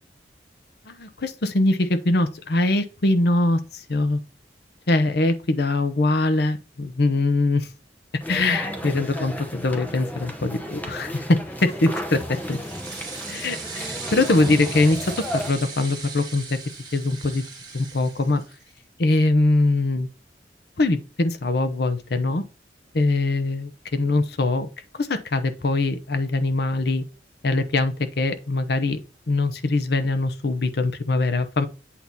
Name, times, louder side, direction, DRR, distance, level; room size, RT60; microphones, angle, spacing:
voice 1, 0.9-4.2 4.9-7.7 8.3-12.6 13.3-16.6 16.9-17.4 17.7-18.4 19.0-20.1 20.8-22.4 22.9-24.7 24.9-27.0 27.4-29.0 29.3-31.7, left 2 dB, 60° left, 0.8 m, -22 dB
sound 1, 8.2-15.5, equal, 10° left, 0.9 m, -34 dB
sound 2, 11.7-18.7, right 4 dB, 20° right, 2.0 m, -38 dB
8.4 x 2.9 x 5.2 m
head